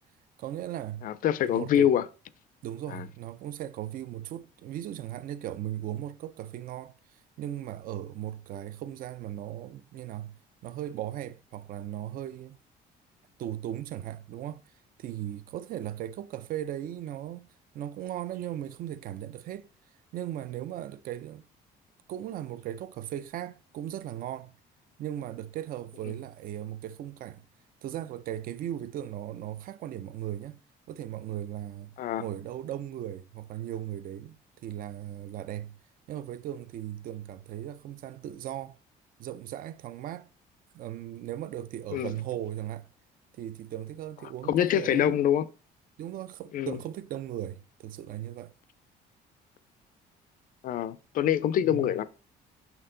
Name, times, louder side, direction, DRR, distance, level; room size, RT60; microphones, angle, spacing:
voice 1, 0.4-1.1 1.5-1.9 2.6-7.0 7.4-12.6 13.4-14.6 15.0-17.5 17.7-19.7 20.1-21.4 22.1-24.6 25.0-27.4 27.8-30.6 30.9-35.8 36.1-38.8 39.2-40.3 40.7-42.9 43.3-45.2 46.0-48.5 51.6-52.0, right 12 dB, 55° right, 0.4 m, -37 dB
voice 2, 1.0-2.0 2.9-3.1 32.0-32.2 41.9-42.1 44.5-45.5 46.5-46.8 50.6-52.1, left 10 dB, 55° left, 0.4 m, -25 dB
5.7 x 4.4 x 3.8 m
cardioid pair, 110°, 17 cm